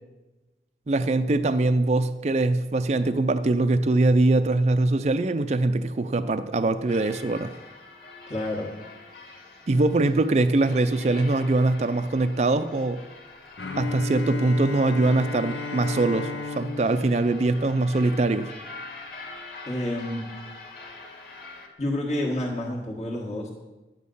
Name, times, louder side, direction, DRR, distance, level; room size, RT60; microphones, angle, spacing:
voice 1, 0.9-7.5 9.7-13.0 13.8-16.3 16.6-18.5, right 2 dB, 40° right, 9 dB, 0.4 m, -22 dB
sound 1, 6.9-21.7, left 3 dB, 60° left, 2.0 m, -45 dB
voice 2, 8.3-8.7 19.6-20.3 21.8-23.5, left 1 dB, 40° left, -4 dB, 1.6 m, -29 dB
Bowed string instrument, 13.6-18.4, left 4 dB, 85° left, 1.0 m, -35 dB
10.5 x 8.4 x 5.4 m, 1.1 s
head